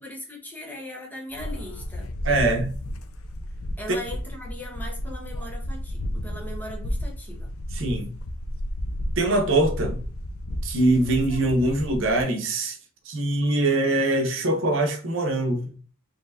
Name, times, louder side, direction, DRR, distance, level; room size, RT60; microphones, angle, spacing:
voice 1, 0.0-2.1 3.8-7.5, left 1 dB, 10° left, 0.9 m, -39 dB
sound 1, 1.3-12.2, equal, 85° left, 0.6 m, -32 dB
voice 2, 2.2-2.7 3.9-4.0 7.7-8.2 9.2-10.0 10.6-12.8 13.1-15.7, right 2 dB, 65° right, 0.9 m, -23 dB
4.3 x 3.2 x 2.6 m
head